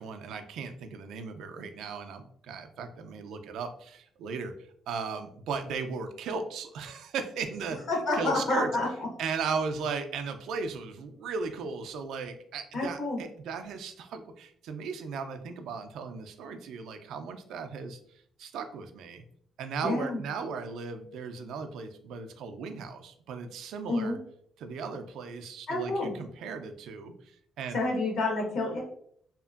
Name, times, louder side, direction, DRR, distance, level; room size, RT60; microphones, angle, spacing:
voice 1, 0.0-4.5 4.9-7.8 8.1-8.7 9.2-18.0 18.4-19.2 19.6-24.2 24.6-27.1 27.6-27.8, right 5 dB, 80° right, 7 dB, 0.3 m, -36 dB
voice 2, 7.9-8.9 12.7-13.2 19.8-20.2 23.9-24.2 25.7-26.1 27.7-28.8, left 2 dB, 70° left, -1 dB, 1.1 m, -28 dB
2.8 x 2.5 x 2.3 m, 0.64 s
cardioid pair, 90°, 0 cm